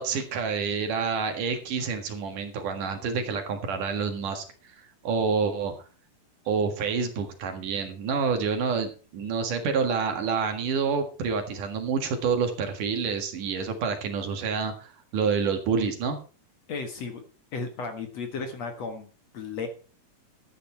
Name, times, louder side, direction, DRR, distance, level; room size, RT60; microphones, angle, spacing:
voice 1, 0.0-4.4 4.7-5.7 6.5-16.2, right 5 dB, 65° right, 5 dB, 3.2 m, -28 dB
voice 2, 16.7-17.2 17.5-19.1 19.3-19.7, left 4 dB, 55° left, 6 dB, 2.4 m, -34 dB
13.0 x 9.3 x 4.4 m, 0.36 s
omnidirectional pair, 4.2 m